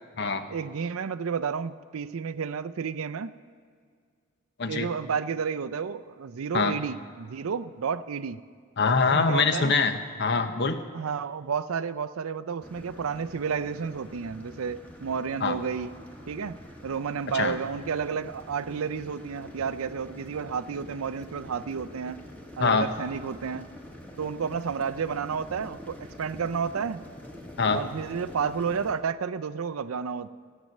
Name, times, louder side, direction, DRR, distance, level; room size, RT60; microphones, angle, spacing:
voice 1, 0.5-3.3 4.7-8.4 9.1-9.7 10.9-15.9 16.3-22.2 22.6-23.7 24.2-27.0 27.7-30.3, right 6 dB, 90° right, 15 dB, 0.5 m, -31 dB
voice 2, 8.8-10.8 15.4-15.6 17.3-17.6 22.6-22.9 27.6-27.8, left 4 dB, 55° left, 9 dB, 0.8 m, -24 dB
sound 1, 12.6-28.9, equal, 5° left, 1.2 m, -46 dB
15.0 x 9.2 x 6.5 m, 2.1 s
head